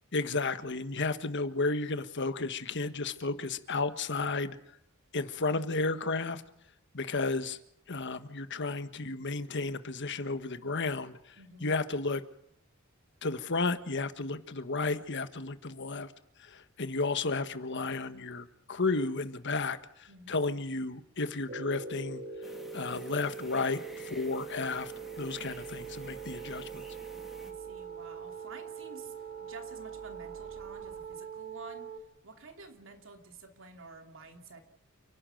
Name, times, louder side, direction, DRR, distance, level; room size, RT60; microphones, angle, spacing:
voice 1, 0.1-4.6 5.1-6.4 6.9-7.6 7.9-11.2 11.6-12.2 13.2-16.1 16.4-22.2 22.7-24.9 25.2-26.8, left 3 dB, 60° left, 10 dB, 1.5 m, -33 dB
voice 2, 11.4-11.8 20.1-20.5 27.4-34.6, right 3 dB, 65° right, 5 dB, 2.9 m, -51 dB
sound 1, 21.5-32.0, right 5 dB, 50° right, 2.2 m, -42 dB
sound 2, 22.4-27.5, equal, ahead, 3.1 m, -51 dB
29.5 x 12.0 x 9.3 m, 0.74 s
head